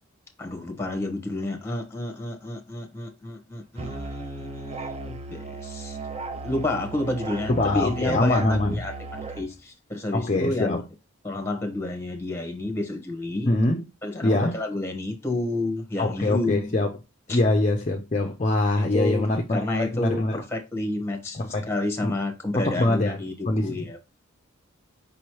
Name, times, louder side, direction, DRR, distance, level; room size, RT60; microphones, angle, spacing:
voice 1, 0.4-6.0 6.4-8.9 9.4-10.8 11.2-13.5 14.0-16.7 17.3-17.4 18.8-19.3 19.5-21.4 21.7-24.0, left 2 dB, 10° left, 1.0 m, -30 dB
Musical instrument, 3.8-9.5, right 3 dB, 25° right, 0.4 m, -36 dB
voice 2, 7.5-8.8 10.1-10.8 13.5-13.9 14.2-14.6 16.0-16.9 17.3-20.4 21.3-21.7 22.0-22.1 22.5-23.2 23.5-23.9, left 2 dB, 30° left, 0.5 m, -24 dB
5.3 x 3.0 x 3.0 m
head